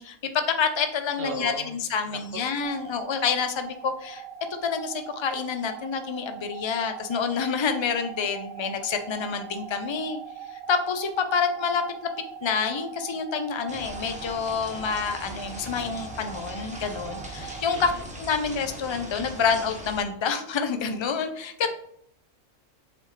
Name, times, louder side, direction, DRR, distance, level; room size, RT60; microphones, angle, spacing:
voice 1, 0.0-4.2 4.6-10.2 10.5-11.8 12.4-17.9 18.2-21.7, left 6 dB, 40° left, 7 dB, 0.4 m, -28 dB
voice 2, 1.2-1.8 2.1-2.4 17.7-18.0 21.6-21.7, right 4 dB, 50° right, 7 dB, 0.8 m, -37 dB
sound 1, 2.6-17.7, right 8 dB, 75° right, 1.1 m, -41 dB
sound 2, 13.7-20.0, equal, 5° right, 0.9 m, -40 dB
7.7 x 4.2 x 3.3 m, 0.69 s
omnidirectional pair, 1.4 m